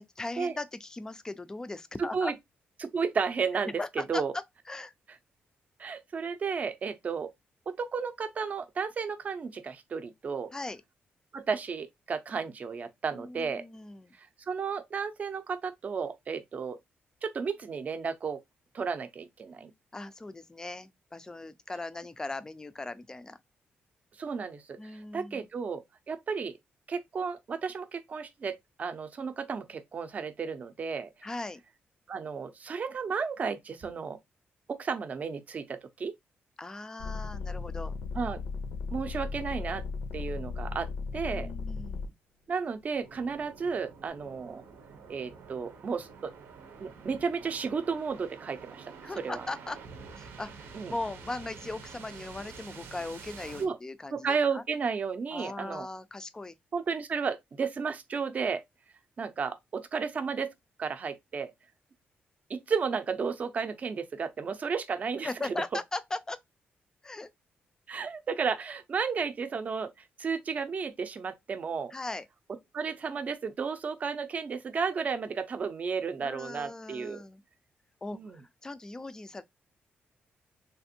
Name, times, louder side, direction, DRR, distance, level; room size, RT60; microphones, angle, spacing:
voice 1, 0.0-2.3 3.8-4.9 10.5-10.8 13.1-14.1 19.9-23.4 24.8-25.5 31.2-31.6 36.6-37.9 41.3-42.1 49.0-49.8 50.1-54.6 55.3-56.5 65.2-66.4 67.0-67.3 71.9-72.3 76.2-77.4 78.0-79.4, left 2 dB, 15° left, 0.3 m, -39 dB
voice 2, 2.0-2.3 2.8-3.7 4.1-4.3 5.8-7.3 7.7-10.5 11.3-13.7 14.5-16.8 17.2-18.4 18.7-19.7 24.2-26.5 26.9-31.1 32.1-34.2 34.7-36.1 38.1-38.4 38.9-39.8 40.1-41.5 42.5-44.6 45.1-46.3 46.8-48.9 49.2-49.4 50.7-50.9 53.6-53.8 54.1-55.9 56.7-58.6 59.2-60.5 60.8-61.5 62.5-65.3 67.9-71.9 72.7-77.2 78.1-78.4, right 5 dB, 40° right, 0.5 m, -33 dB
sound 1, 37.0-42.1 42.8-43.5, left 4 dB, 85° left, 0.6 m, -36 dB
sound 2, 43.0-53.7, right 5 dB, 90° right, 0.7 m, -48 dB
3.4 x 2.5 x 2.7 m
cardioid pair, 125°, 4 cm